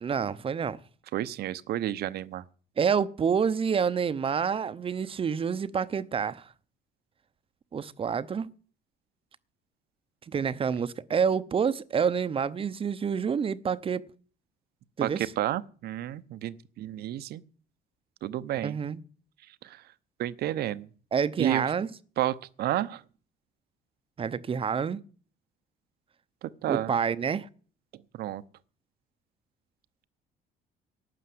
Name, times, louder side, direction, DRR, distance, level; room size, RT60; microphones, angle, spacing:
voice 1, 0.0-0.8 2.8-6.5 7.7-8.5 10.3-14.0 15.0-15.2 18.6-19.0 21.1-21.9 24.2-25.0 26.7-27.5, right 6 dB, 35° right, 0.8 m, -28 dB
voice 2, 1.1-2.4 15.0-17.4 18.2-18.8 19.6-19.8 20.2-20.9 21.4-21.7 22.2-23.0 26.4-26.9 28.1-28.4, right 13 dB, 70° right, 0.8 m, -31 dB
12.5 x 9.3 x 7.8 m
cardioid pair, 110°, 17 cm